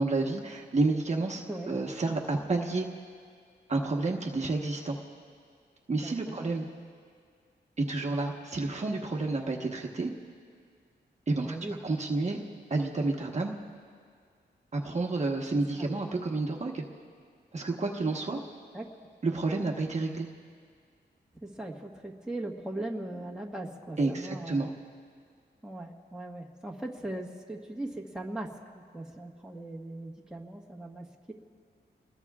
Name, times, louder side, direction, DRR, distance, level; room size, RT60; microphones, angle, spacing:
voice 1, 0.0-2.9 3.7-5.0 5.9-6.7 7.8-10.1 11.3-11.6 11.8-12.4 12.7-13.5 14.7-16.8 17.5-18.4 19.2-20.3 24.0-24.7, right 3 dB, 40° right, 0 dB, 1.2 m, -30 dB
voice 2, 5.9-6.4 11.4-11.8 15.8-15.9 18.7-18.9 21.4-24.7 25.6-28.5 28.7-31.3, right 1 dB, 5° right, -1 dB, 1.4 m, -39 dB
28.5 x 21.0 x 2.4 m, 2.1 s
wide cardioid pair, 115°, 18 cm